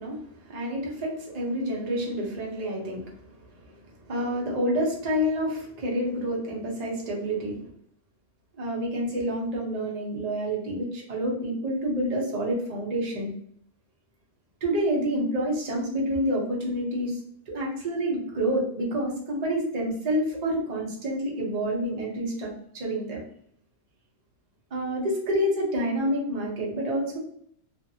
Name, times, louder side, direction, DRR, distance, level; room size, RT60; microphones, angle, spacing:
voice 1, 0.0-7.6 8.6-13.3 14.6-17.2 17.5-23.2 24.7-27.2, equal, 35° right, -3 dB, 0.7 m, -28 dB
2.6 x 2.5 x 2.7 m, 0.66 s
omnidirectional pair, 1.5 m